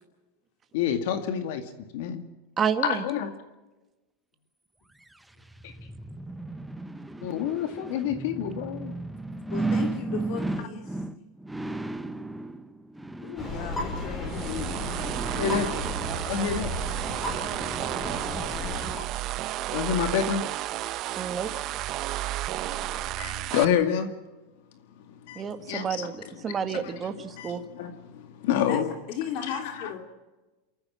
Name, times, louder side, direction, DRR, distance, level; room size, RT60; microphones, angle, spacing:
voice 1, 0.7-1.7 1.9-2.3 2.8-3.3 5.6-5.7 7.2-8.9 15.4-15.7 16.3-16.7 19.7-20.4 22.7-24.1 25.3-26.1 26.5-26.9 27.4-28.9 29.4-29.5 29.8-29.9, left 8 dB, 65° left, 7 dB, 2.1 m, -28 dB
voice 2, 2.6-3.0 21.2-21.5 25.4-27.6, right 7 dB, 20° right, 8 dB, 1.8 m, -30 dB
sound 1, 5.0-18.9 19.4-19.5, right 2 dB, 5° right, 0.8 m, -36 dB
voice 3, 9.5-11.3 13.2-15.6 28.6-28.8 29.1-30.0, left 8 dB, 50° left, 3 dB, 2.6 m, -37 dB
sound 2, 13.4-19.0, left 1 dB, 15° left, 5.7 m, -34 dB
sound 3, 14.3-23.7, right 15 dB, 40° right, 0.8 m, -32 dB
28.0 x 14.5 x 7.5 m, 1.1 s
supercardioid pair, 145°, 0 cm